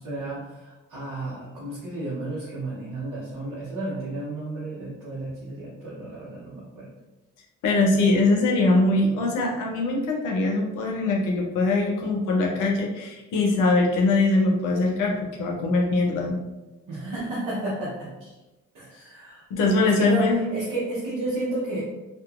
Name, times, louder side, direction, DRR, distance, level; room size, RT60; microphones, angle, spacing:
voice 1, 0.0-6.9 16.9-18.3 18.7-21.8, right 2 dB, 90° right, -9 dB, 0.8 m, -32 dB
voice 2, 7.6-16.4 19.5-20.4, left 2 dB, 85° left, 0 dB, 0.6 m, -22 dB
2.8 x 2.3 x 2.3 m, 1.1 s
supercardioid pair, 50°, 31 cm